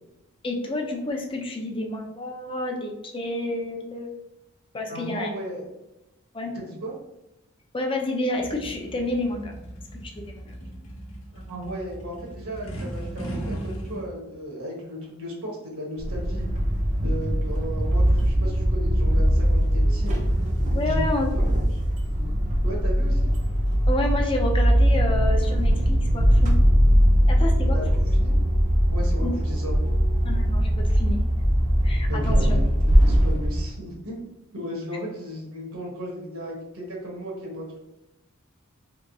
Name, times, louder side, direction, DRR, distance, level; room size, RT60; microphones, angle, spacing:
voice 1, 0.4-4.1 4.7-5.3 6.3-6.5 7.7-9.6 10.0-10.5 20.7-21.3 23.9-26.5 27.3-27.8 29.2-29.3 30.2-31.2 31.8-32.6, left 2 dB, 25° left, 2 dB, 0.5 m, -29 dB
voice 2, 4.9-5.6 6.5-6.9 10.6-10.7 11.3-16.5 17.0-20.1 20.8-21.5 21.8-22.4 22.6-23.3 27.7-28.3 28.9-29.8 32.1-34.2 34.5-37.8, equal, 75° right, -2 dB, 1.2 m, -35 dB
sound 1, 8.4-14.1, right 1 dB, 75° left, 0.9 m, -37 dB
sound 2, 16.0-33.6, equal, 35° right, 0.5 m, -21 dB
3.5 x 2.8 x 2.7 m, 0.94 s
head